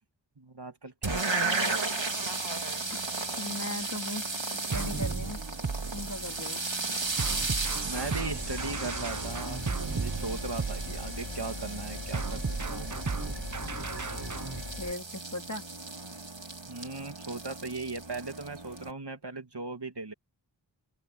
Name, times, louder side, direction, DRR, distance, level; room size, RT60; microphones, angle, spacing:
voice 1, 0.4-1.8 7.7-9.6 9.9-12.4 12.7-12.9 16.7-20.1, right 3 dB, 60° right, 2.4 m, -38 dB
sound 1, 1.0-18.9, right 3 dB, 80° right, 3.7 m, -35 dB
voice 2, 3.4-4.2 4.7-5.4 5.9-6.6 10.9-11.0 14.8-15.7, left 2 dB, 40° left, 3.4 m, -38 dB
sound 2, 4.7-6.4 7.2-11.4 12.1-14.6, right 4 dB, 40° right, 0.9 m, -35 dB
sound 3, 7.9-14.9, left 3 dB, 85° left, 4.7 m, -41 dB
open air
wide cardioid pair, 45°, 45 cm